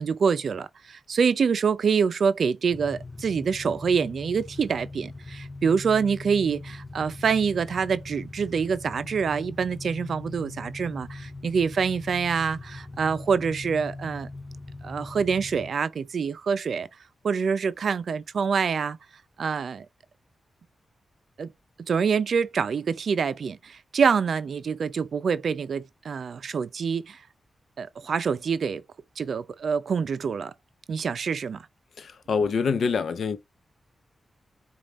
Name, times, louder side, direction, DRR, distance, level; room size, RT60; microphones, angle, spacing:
voice 1, 0.0-14.3 14.8-16.9 17.2-19.0 19.4-19.9 21.4-21.5 21.9-27.2 27.8-28.8 29.2-30.5 30.9-31.7, right 6 dB, 70° right, 0.4 m, -26 dB
sound 1, 2.7-15.7, left 2 dB, 30° left, 0.4 m, -41 dB
voice 2, 32.0-33.4, left 5 dB, 75° left, 0.6 m, -25 dB
5.2 x 2.4 x 3.0 m
cardioid pair, 50°, 0 cm